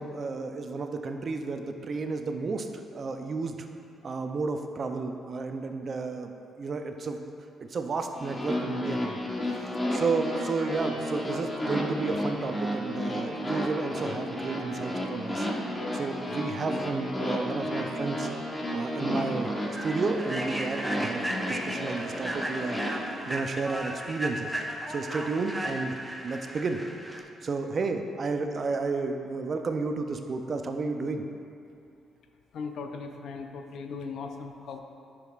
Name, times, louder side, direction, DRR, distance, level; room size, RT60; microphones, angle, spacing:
voice 1, 0.0-2.7 2.9-3.7 4.0-6.3 6.6-7.2 7.6-9.2 9.5-15.5 15.9-18.3 18.7-19.5 19.8-22.8 23.3-24.5 24.9-25.9 26.2-26.8 27.4-31.3, right 4 dB, 45° right, 6 dB, 0.5 m, -32 dB
sound 1, 8.2-22.9, equal, 20° left, 1.2 m, -32 dB
Human voice / Train, 18.4-18.5 18.9-19.1 19.6-27.2, right 1 dB, 5° right, 0.7 m, -36 dB
voice 2, 32.5-34.8, left 5 dB, 70° left, 5 dB, 0.6 m, -38 dB
10.0 x 6.2 x 2.4 m, 2.6 s
cardioid pair, 90°, 0 cm